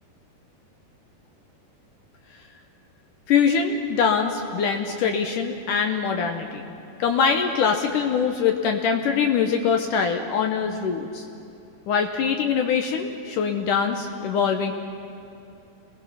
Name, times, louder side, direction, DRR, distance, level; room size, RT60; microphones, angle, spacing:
voice 1, 3.3-6.7 7.0-11.2 11.9-14.7, left 6 dB, 70° left, 4 dB, 2.0 m, -23 dB
29.5 x 21.5 x 5.7 m, 2.7 s
omnidirectional pair, 4.9 m